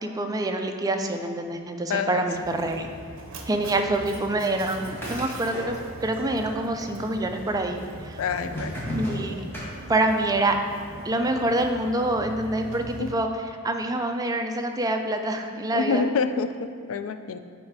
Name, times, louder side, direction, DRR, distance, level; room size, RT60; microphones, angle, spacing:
voice 1, 0.0-2.9 3.5-8.2 8.9-9.3 9.9-10.6 11.0-13.3 13.6-16.0, right 1 dB, 15° right, 5 dB, 0.4 m, -26 dB
voice 2, 1.9-2.2 8.2-8.8 13.0-13.1 15.7-17.4, left 5 dB, 70° left, 9 dB, 0.4 m, -27 dB
Mechanisms, 2.3-13.1, right 2 dB, 65° right, 0.7 m, -41 dB
sound 1, 4.7-6.2 6.4-7.2 7.8-10.3, equal, 10° left, 1.3 m, -35 dB
8.5 x 3.2 x 4.7 m, 2.2 s
head